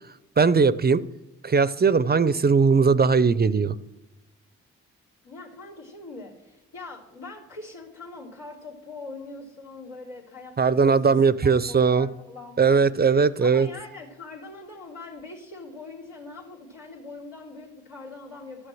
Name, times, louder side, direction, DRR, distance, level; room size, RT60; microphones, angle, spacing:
voice 1, 0.4-1.0 1.4-3.7 10.6-12.1 12.6-13.7, right 5 dB, 30° right, 17 dB, 0.6 m, -19 dB
voice 2, 5.2-11.2 11.4-12.9 13.4-18.7, left 3 dB, 90° left, -5 dB, 3.4 m, -42 dB
12.0 x 6.6 x 7.7 m, 0.97 s
supercardioid pair, 45°, 33 cm